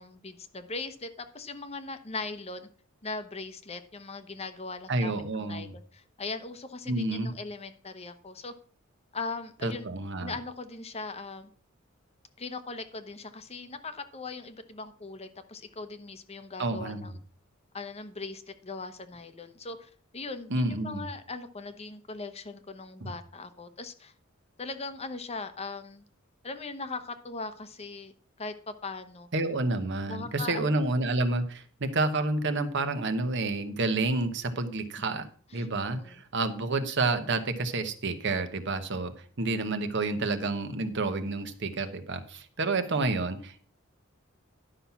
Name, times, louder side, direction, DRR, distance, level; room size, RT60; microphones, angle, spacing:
voice 1, 0.0-2.7 3.0-8.5 9.1-9.9 10.2-11.5 12.4-17.2 17.7-24.1 24.6-26.0 26.4-28.1 28.4-29.3 30.1-30.8 35.5-36.2, left 3 dB, 30° left, 9 dB, 0.9 m, -39 dB
voice 2, 4.9-5.7 6.9-7.3 9.6-10.3 16.6-17.1 20.5-21.1 23.0-23.1 29.3-35.3 35.5-43.6, right 2 dB, 60° right, 8 dB, 1.1 m, -29 dB
11.0 x 5.8 x 5.8 m, 0.43 s
head